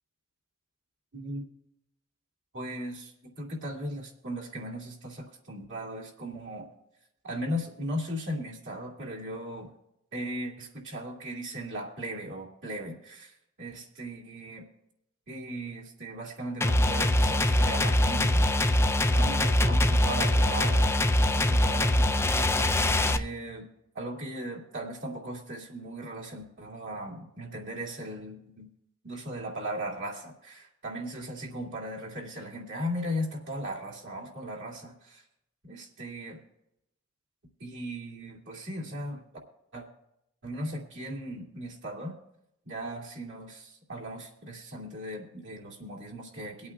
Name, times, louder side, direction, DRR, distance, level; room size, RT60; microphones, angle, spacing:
voice 1, 1.1-1.4 2.5-6.7 7.2-9.7 10.1-14.6 15.3-18.7 19.1-20.9 21.3-22.2 22.7-23.7 23.9-28.7 29.0-35.2 35.6-36.4 37.6-39.2 39.7-39.8 40.4-42.2 42.6-46.7, equal, 60° right, -2 dB, 2.5 m, -37 dB
sound 1, 16.6-23.2, left 1 dB, 10° left, 0.5 m, -23 dB
23.5 x 8.5 x 2.4 m, 0.81 s
head